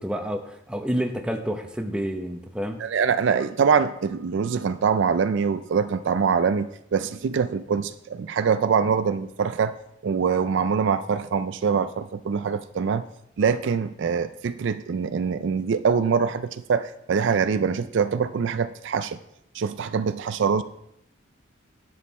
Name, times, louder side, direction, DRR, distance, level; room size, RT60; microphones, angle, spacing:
voice 1, 0.0-2.8, equal, 5° right, 4 dB, 0.7 m, -29 dB
voice 2, 2.8-9.8 10.0-13.1 13.4-19.2 19.5-20.6, right 6 dB, 60° right, 12 dB, 0.4 m, -24 dB
10.0 x 6.4 x 4.2 m, 0.78 s
head